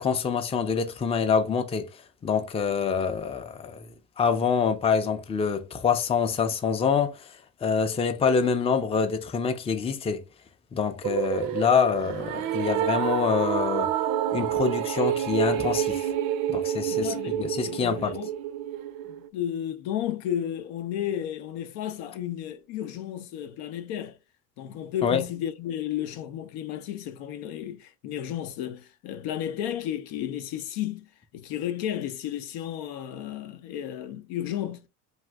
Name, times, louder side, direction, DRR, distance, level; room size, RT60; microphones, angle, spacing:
voice 1, 0.0-10.2 10.7-13.9 14.3-16.1 16.5-18.2 25.0-25.2, left 6 dB, 15° left, 0.4 m, -26 dB
sound 1, 11.0-19.3, right 11 dB, 65° right, 0.5 m, -28 dB
voice 2, 16.9-18.3 19.1-24.2 24.6-31.1 31.3-34.9, left 11 dB, 75° left, 0.6 m, -33 dB
2.6 x 2.4 x 3.2 m
supercardioid pair, 85°, 39 cm